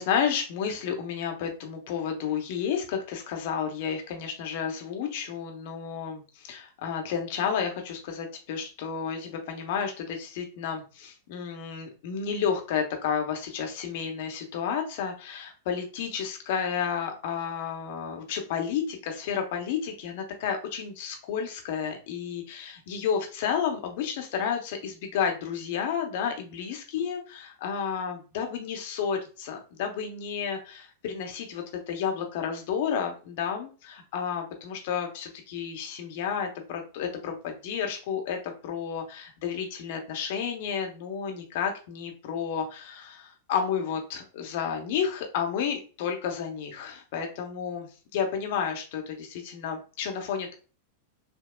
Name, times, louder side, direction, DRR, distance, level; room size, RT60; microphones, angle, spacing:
voice 1, 0.0-50.5, left 7 dB, 50° left, 3 dB, 0.9 m, -31 dB
6.0 x 2.3 x 2.2 m, 0.35 s
figure-of-eight pair, 95°, 0 cm